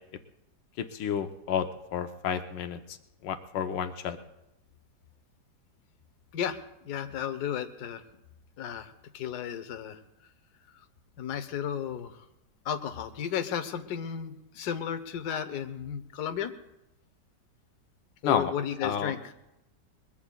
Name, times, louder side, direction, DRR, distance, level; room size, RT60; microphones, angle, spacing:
voice 1, 0.8-1.7 1.9-2.8 3.2-4.2 18.2-18.5 18.8-19.1, left 8 dB, 85° left, 8 dB, 1.4 m, -30 dB
voice 2, 6.3-8.0 8.6-10.0 11.2-12.3 12.6-16.5 18.2-19.3, left 8 dB, 70° left, 9 dB, 1.3 m, -34 dB
22.0 x 21.5 x 2.3 m, 0.89 s
omnidirectional pair, 1.9 m